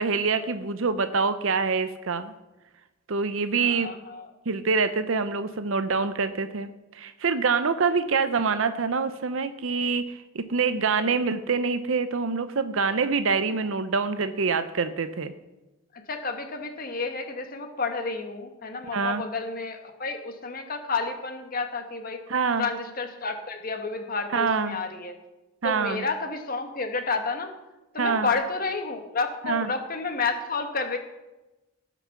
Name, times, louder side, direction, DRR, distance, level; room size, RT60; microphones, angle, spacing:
voice 1, 0.0-2.3 3.1-3.9 4.5-15.3 18.9-19.2 22.3-22.7 24.3-24.8 25.6-26.0 28.0-28.3 29.4-29.7, right 5 dB, 65° right, 11 dB, 0.6 m, -25 dB
voice 2, 3.6-4.3 15.9-22.2 22.6-25.1 25.6-27.5 27.9-31.0, left 4 dB, 45° left, 6 dB, 1.4 m, -30 dB
18.0 x 6.0 x 5.9 m, 1.0 s
head